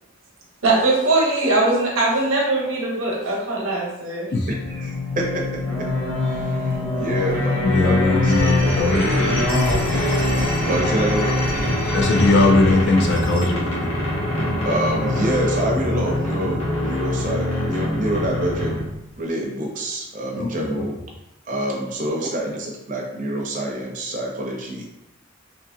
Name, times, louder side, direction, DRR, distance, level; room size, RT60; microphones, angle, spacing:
voice 1, 0.6-4.3, right 2 dB, 90° right, -2 dB, 0.8 m, -20 dB
sound 1, 4.5-10.5, left 3 dB, ahead, 0.7 m, -27 dB
voice 2, 4.5-5.4 5.8-5.9 6.2-8.3 10.7-11.4 14.6-18.8 19.2-21.0 21.5-24.9, right 1 dB, 40° right, -1 dB, 0.5 m, -27 dB
sound 2, 5.6-19.0, left 1 dB, 75° left, 1.0 m, -24 dB
voice 3, 7.6-9.5 11.9-13.9 20.4-20.8, left 2 dB, 55° left, 1 dB, 0.4 m, -20 dB
sound 3, 8.2-13.4, equal, 30° left, 1.2 m, -30 dB
2.7 x 2.5 x 2.5 m, 0.90 s
head